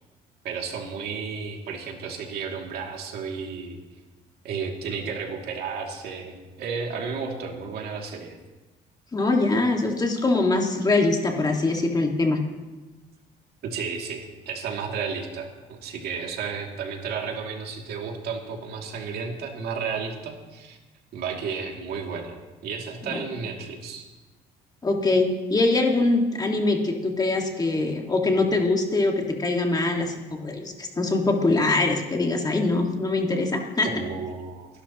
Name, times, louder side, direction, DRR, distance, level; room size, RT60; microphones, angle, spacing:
voice 1, 0.4-3.8 4.4-8.4 13.6-20.8 21.1-22.4 22.6-24.0 33.8-34.7, right 5 dB, 70° right, 1 dB, 2.6 m, -33 dB
voice 2, 9.1-12.4 23.0-23.3 24.8-33.9, left 2 dB, 25° left, 2 dB, 1.9 m, -23 dB
29.5 x 11.5 x 3.0 m, 1.1 s
cardioid pair, 110°, 17 cm